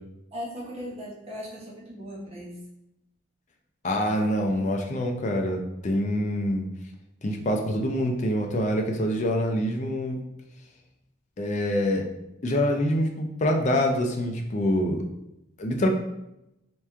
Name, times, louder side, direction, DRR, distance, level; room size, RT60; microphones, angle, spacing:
voice 1, 0.3-2.6, equal, 30° right, -5 dB, 1.0 m, -38 dB
voice 2, 3.8-6.6 7.2-10.2 11.4-12.0 12.4-15.0 15.6-15.9, left 1 dB, 35° left, 2 dB, 0.4 m, -25 dB
3.4 x 3.0 x 3.3 m, 0.87 s
head